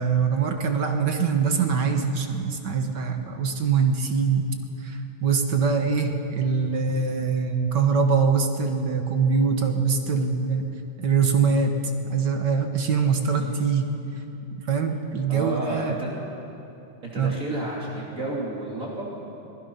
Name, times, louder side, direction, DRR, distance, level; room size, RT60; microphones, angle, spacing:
voice 1, 0.0-4.5 4.8-11.8 12.1-14.0 14.7-16.0 17.2-17.4, right 5 dB, 60° right, 5 dB, 1.8 m, -23 dB
voice 2, 15.3-16.1 17.0-19.1, right 2 dB, 40° right, -4 dB, 3.4 m, -31 dB
25.5 x 20.0 x 5.6 m, 2.9 s
omnidirectional pair, 2.2 m